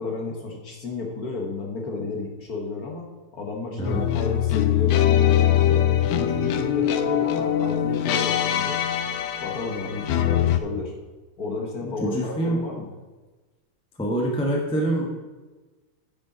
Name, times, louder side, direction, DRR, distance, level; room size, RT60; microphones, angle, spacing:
voice 1, 0.0-3.1 3.3-5.8 6.1-8.8 9.4-10.9 11.4-12.9, left 3 dB, 50° left, 0 dB, 1.6 m, -32 dB
sound 1, 3.9-10.6, left 10 dB, 70° left, 1.0 m, -22 dB
voice 2, 11.8-12.6 14.0-15.1, right 1 dB, 5° left, -1 dB, 1.0 m, -25 dB
10.0 x 6.6 x 4.1 m, 1.2 s
omnidirectional pair, 2.3 m